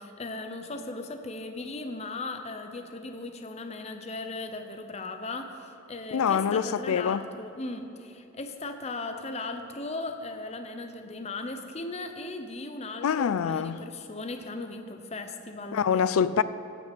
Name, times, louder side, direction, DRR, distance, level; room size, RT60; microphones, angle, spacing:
voice 1, 0.0-15.9, left 2 dB, 30° left, 0.6 m, -37 dB
voice 2, 6.1-7.2 13.0-13.8 15.7-16.4, left 7 dB, 85° left, 0.4 m, -25 dB
16.0 x 5.9 x 6.0 m
head